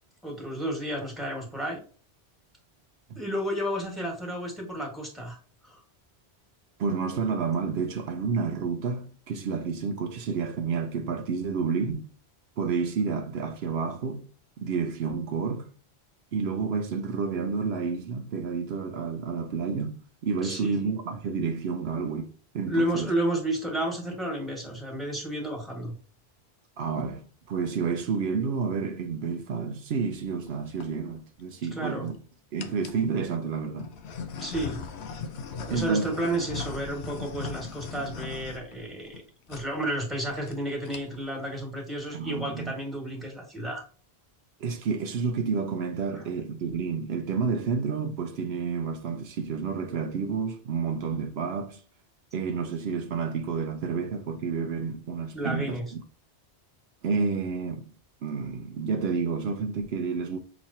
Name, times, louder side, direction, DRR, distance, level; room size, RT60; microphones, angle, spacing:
voice 1, 0.2-1.8 3.1-5.4 5.6-5.8 20.4-20.8 22.7-25.9 31.7-32.1 34.4-34.8 35.7-39.2 39.5-43.8 46.1-46.2 55.3-55.8, right 1 dB, ahead, 1.5 m, -31 dB
voice 2, 6.8-12.1 12.6-14.3 14.6-15.7 16.3-23.1 26.8-32.1 32.5-33.9 35.7-36.1 42.1-42.7 44.6-51.8 52.3-55.8 57.0-57.8 58.2-60.4, right 5 dB, 75° right, 0.8 m, -30 dB
sound 1, 30.5-30.9 31.6-32.1 32.6-33.1 33.8-39.2 39.5-39.7 40.0-40.1 40.3-40.6 40.8-41.3, left 5 dB, 90° left, 0.9 m, -39 dB
5.9 x 3.0 x 2.8 m
omnidirectional pair, 1.1 m